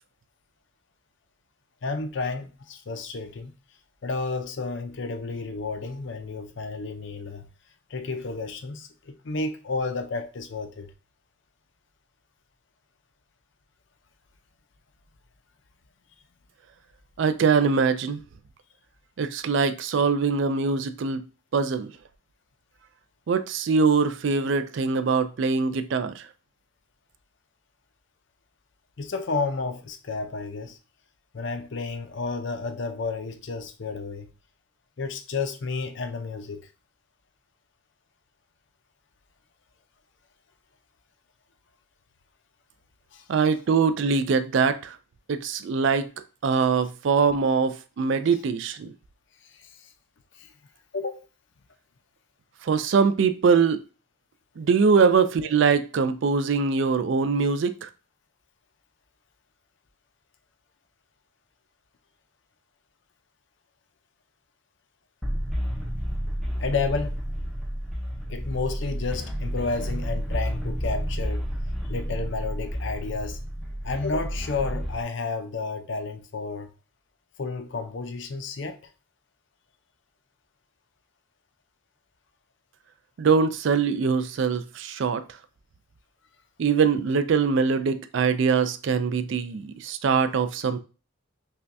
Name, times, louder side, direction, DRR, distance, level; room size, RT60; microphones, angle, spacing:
voice 1, 1.8-3.5 4.0-7.5 7.9-10.9 29.0-30.8 31.3-34.3 35.0-36.6 43.1-43.2 49.4-49.9 50.4-50.5 50.9-51.3 66.6-67.3 68.3-71.4 71.9-73.4 73.8-76.7 77.4-78.8, left 4 dB, 55° left, 0.5 m, -31 dB
voice 2, 17.2-18.2 19.2-21.3 21.5-21.9 23.3-26.3 43.3-45.0 45.3-46.1 46.4-48.9 52.6-53.8 54.6-57.9 83.2-85.2 86.6-90.8, right 5 dB, 55° right, 0.3 m, -23 dB
sound 1, 65.2-75.0, equal, ahead, 0.6 m, -30 dB
5.5 x 2.2 x 2.6 m
head